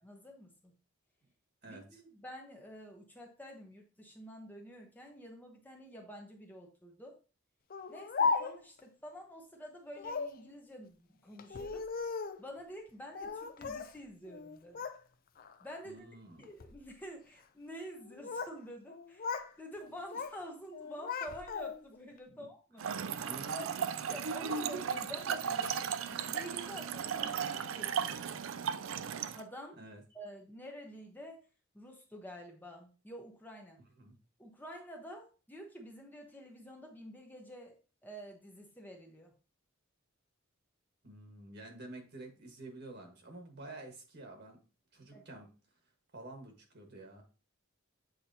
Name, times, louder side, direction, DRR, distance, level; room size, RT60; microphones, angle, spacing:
voice 1, 0.0-0.7 1.7-7.2 7.9-11.9 12.4-14.9 15.6-16.1 16.4-23.1 23.5-23.8 24.1-28.5 29.3-31.4 31.7-33.8 34.4-39.3 45.1-45.2, equal, 10° left, 1 dB, 0.9 m, -49 dB
voice 2, 1.6-2.0 15.8-16.4 22.3-22.5 23.2-24.2 29.8-30.0 34.0-34.1 41.0-44.6 44.9-45.5 46.1-47.2, right 2 dB, 55° right, 3 dB, 1.5 m, -49 dB
Speech, 7.7-8.8 10.0-10.4 11.4-12.4 13.1-13.9 14.3-15.0 15.4-15.8 16.4-16.8 17.9-18.6 18.9-19.5 19.8-20.4 20.7-22.0, left 5 dB, 45° left, 0.5 m, -37 dB
Trickle dribble / Fill (with liquid), 22.8-29.4, right 7 dB, 70° right, 0.4 m, -36 dB
7.9 x 4.2 x 2.8 m, 0.33 s
head